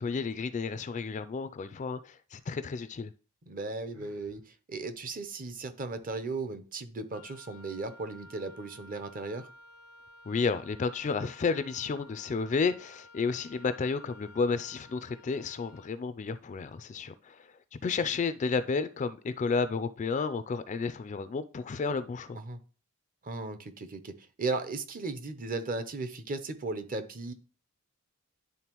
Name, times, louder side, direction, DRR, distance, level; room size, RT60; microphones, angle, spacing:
voice 1, 0.0-3.1 10.3-17.5 17.8-22.4, left 4 dB, 35° left, 0.3 m, -31 dB
voice 2, 3.5-9.5 22.3-22.6 23.2-27.3, right 3 dB, 40° right, 0.6 m, -36 dB
Sigh, 3.9-4.4, right 5 dB, 70° right, 1.3 m, -56 dB
Wind instrument woodwind instrument, 7.1-16.0, left 2 dB, 85° left, 0.6 m, -54 dB
11.0 x 3.6 x 3.0 m
head